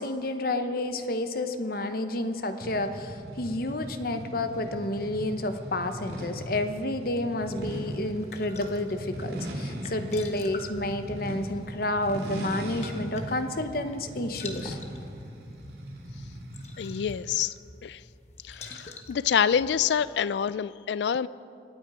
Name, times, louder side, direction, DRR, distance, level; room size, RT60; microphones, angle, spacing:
voice 1, 0.0-14.8, left 1 dB, 55° left, 8 dB, 0.9 m, -30 dB
sound 1, 2.6-17.3, equal, 65° right, 2.3 m, -39 dB
sound 2, 7.4-20.2, left 2 dB, 40° left, 1.2 m, -47 dB
voice 2, 16.8-17.5 17.8-18.0 18.4-21.3, left 8 dB, 75° left, 18 dB, 0.4 m, -27 dB
25.0 x 8.8 x 4.9 m, 2.5 s
head